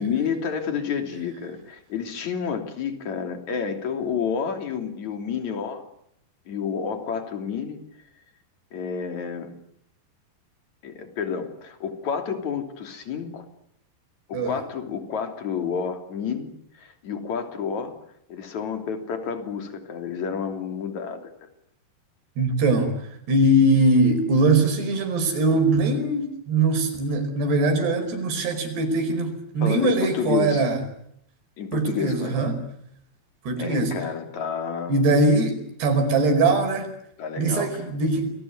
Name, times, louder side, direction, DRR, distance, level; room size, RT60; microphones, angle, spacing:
voice 1, 0.0-5.8 6.5-7.8 8.7-9.5 10.8-13.5 14.3-17.9 18.3-21.5 29.6-30.6 31.6-32.3 33.6-35.2 37.2-38.0, left 6 dB, 45° left, 7 dB, 4.0 m, -30 dB
voice 2, 22.4-22.9 23.3-30.8 31.7-32.6 33.5-34.0 34.9-36.9 37.4-38.3, right 2 dB, 70° right, 8 dB, 7.0 m, -21 dB
29.0 x 21.0 x 9.5 m, 0.75 s
omnidirectional pair, 5.0 m